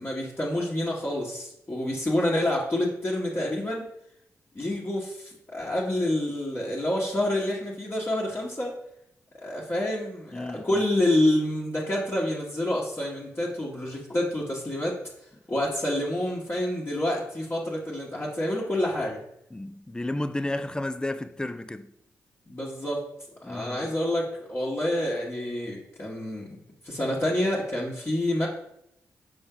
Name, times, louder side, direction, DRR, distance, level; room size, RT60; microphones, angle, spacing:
voice 1, 0.0-3.9 4.5-8.8 9.3-15.0 15.5-19.2 22.5-23.1 23.4-26.6 26.8-28.5, left 1 dB, 35° left, 1.7 m, -28 dB
voice 2, 10.3-10.8 19.5-21.9 23.4-23.9, left 1 dB, 10° left, 0.5 m, -32 dB
6.1 x 4.4 x 3.9 m
supercardioid pair, 45°, 7 cm